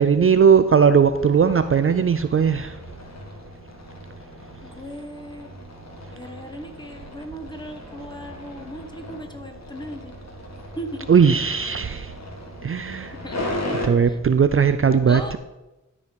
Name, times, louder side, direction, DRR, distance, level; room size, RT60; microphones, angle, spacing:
voice 1, 0.0-2.7 11.1-12.1 12.6-13.1 13.8-15.4, right 6 dB, 45° right, 10 dB, 0.5 m, -18 dB
sound 1, 1.1-13.9, left 1 dB, 55° left, 1.7 m, -37 dB
voice 2, 4.6-5.5 6.1-10.1 10.8-11.1 13.1-13.4 14.0-14.2 15.0-15.4, equal, 15° left, 5 dB, 1.3 m, -37 dB
12.0 x 4.9 x 5.2 m, 1.0 s
cardioid pair, 55°, 32 cm